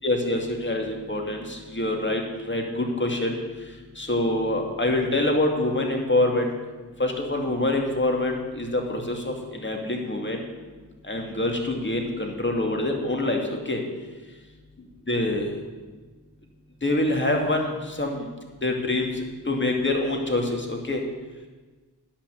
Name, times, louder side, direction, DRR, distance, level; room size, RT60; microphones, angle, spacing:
voice 1, 0.0-3.4 4.0-6.5 7.0-10.4 11.0-13.8 15.1-15.5 16.8-18.3 18.6-21.0, left 2 dB, 25° left, 2 dB, 2.3 m, -25 dB
10.0 x 5.8 x 8.3 m, 1.3 s
cardioid pair, 45°, 41 cm